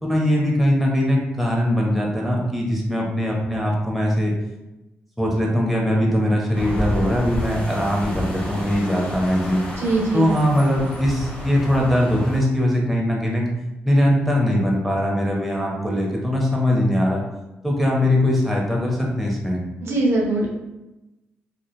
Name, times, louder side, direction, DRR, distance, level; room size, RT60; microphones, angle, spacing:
voice 1, 0.0-4.3 5.2-9.6 10.1-13.4 13.8-17.2 17.6-19.6, left 1 dB, ahead, -2 dB, 0.7 m, -21 dB
sound 1, 6.5-12.4, equal, 25° left, 1.0 m, -31 dB
voice 2, 9.8-10.3 19.8-20.5, right 2 dB, 60° right, -2 dB, 0.6 m, -21 dB
2.6 x 2.1 x 2.2 m, 0.99 s
supercardioid pair, 50°, 5 cm